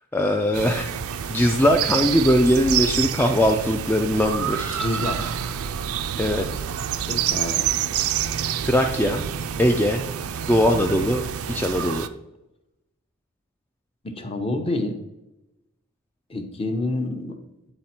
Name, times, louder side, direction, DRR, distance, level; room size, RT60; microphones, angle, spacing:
voice 1, 0.1-0.9 1.3-4.8 6.2-6.6 8.6-9.3 9.6-10.0 10.5-12.1, equal, 10° left, 2 dB, 0.3 m, -21 dB
sound 1, 0.5-12.1, right 9 dB, 65° right, 0.4 m, -28 dB
voice 2, 4.8-5.3 7.1-7.7 14.0-15.0 16.3-17.4, left 2 dB, 25° left, 5 dB, 0.7 m, -28 dB
8.9 x 4.0 x 4.3 m, 0.94 s
head